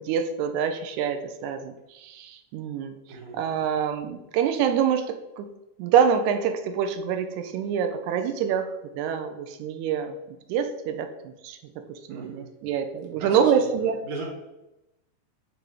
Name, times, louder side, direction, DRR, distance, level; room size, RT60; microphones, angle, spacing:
voice 1, 0.1-2.9 3.3-5.5 5.8-8.7 8.9-11.6 12.1-14.0, right 7 dB, 80° right, 7 dB, 1.7 m, -26 dB
voice 2, 3.1-3.4 12.1-12.5 13.1-13.6 14.0-14.3, right 3 dB, 55° right, -1 dB, 1.8 m, -38 dB
7.4 x 2.6 x 4.8 m, 0.93 s
omnidirectional pair, 3.8 m